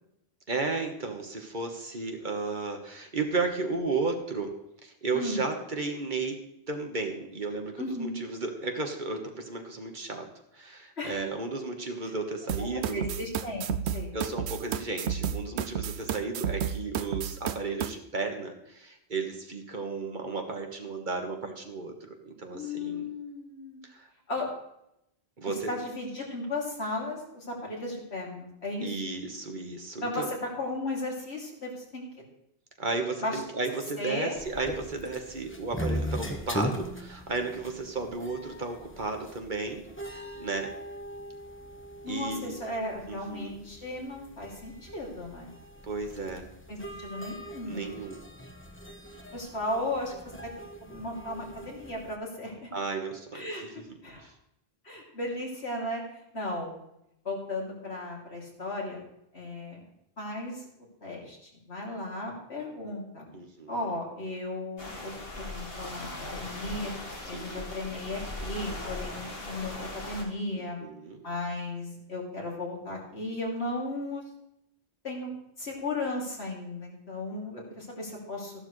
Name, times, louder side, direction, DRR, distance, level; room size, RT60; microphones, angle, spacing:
voice 1, 0.5-4.5 4.8-6.4 6.7-10.3 10.5-13.0 14.1-23.1 23.9-24.1 25.4-25.7 28.8-30.3 32.8-40.7 42.1-42.5 43.1-43.6 45.8-46.4 47.6-48.2 52.7-54.3 63.3-63.7 67.3-67.6 70.5-71.2, right 3 dB, 50° right, 4 dB, 1.6 m, -34 dB
voice 2, 5.1-5.5 7.8-8.2 11.0-11.2 12.6-12.7 12.9-14.1 22.5-23.8 24.3-24.5 25.7-29.0 30.0-32.3 33.2-33.4 34.0-34.3 42.0-45.5 46.7-48.1 49.3-50.5 50.8-52.7 53.3-53.6 54.0-54.3 54.8-56.0 56.3-56.7 57.2-59.0 59.3-59.8 60.2-60.7 61.0-63.3 63.7-65.1 65.4-70.8 71.2-74.2 75.0-75.3 75.6-78.5, left 2 dB, 85° left, -3 dB, 3.2 m, -35 dB
sound 1, 12.5-17.9, right 9 dB, 90° right, 0.9 m, -31 dB
sound 2, 34.4-52.2, equal, 10° left, 1.1 m, -40 dB
sound 3, 64.8-70.2, left 2 dB, 65° left, 2.2 m, -39 dB
13.5 x 11.5 x 3.2 m, 0.81 s
omnidirectional pair, 1.1 m